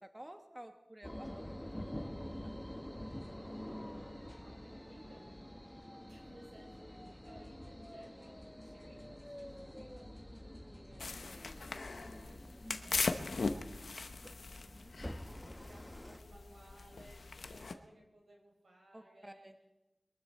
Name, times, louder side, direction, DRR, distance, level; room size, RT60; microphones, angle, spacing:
voice 1, 0.0-1.4 1.9-2.5 14.6-14.9 18.9-19.5, right 1 dB, 15° right, 6 dB, 1.1 m, -53 dB
sound 1, 1.0-16.2, equal, 10° left, 1.0 m, -48 dB
voice 2, 3.3-14.0 14.3-19.5, right 1 dB, 85° right, -1 dB, 5.7 m, -61 dB
sound 2, 11.0-17.7, left 3 dB, 90° left, 0.8 m, -40 dB
22.5 x 12.5 x 4.3 m, 1.0 s
wide cardioid pair, 45°, 0 cm